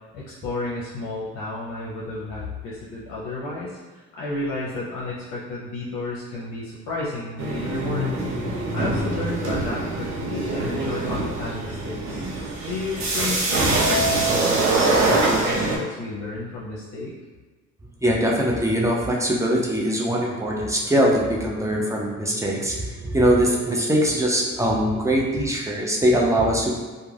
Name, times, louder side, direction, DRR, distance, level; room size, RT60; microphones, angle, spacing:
voice 1, 0.1-8.4 8.7-12.2 12.6-17.1, left 2 dB, 80° left, -6 dB, 0.6 m, -32 dB
sound 1, 7.4-15.8, right 2 dB, 65° right, 0.7 m, -24 dB
voice 2, 18.0-26.7, equal, 10° right, -2 dB, 0.5 m, -22 dB
2.3 x 2.2 x 3.2 m, 1.4 s
cardioid pair, 90°, 30 cm